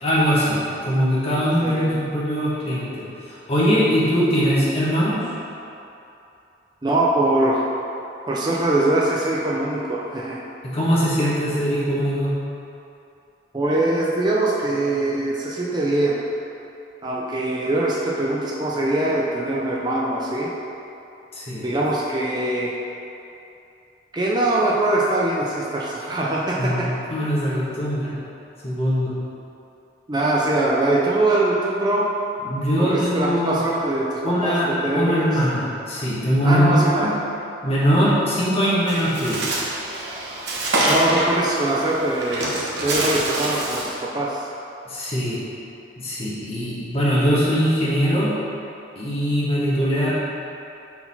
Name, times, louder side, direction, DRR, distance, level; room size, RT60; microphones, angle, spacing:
voice 1, 0.0-5.2 10.6-12.3 21.3-21.7 26.6-28.1 28.6-29.1 32.4-33.6 34.2-37.1 37.6-39.4 44.9-45.4 46.0-48.4 49.0-50.1, equal, 35° left, -8 dB, 1.3 m, -21 dB
voice 2, 1.6-2.0 6.8-7.6 8.3-10.4 13.5-16.2 17.0-20.5 21.6-22.7 24.1-26.9 30.1-32.1 32.8-35.3 36.4-37.1 40.9-42.5 42.8-44.5, right 2 dB, 25° right, -5 dB, 0.5 m, -22 dB
Bird, 38.9-44.0, right 1 dB, 70° right, 1.0 m, -25 dB
4.6 x 4.0 x 5.4 m, 2.8 s
head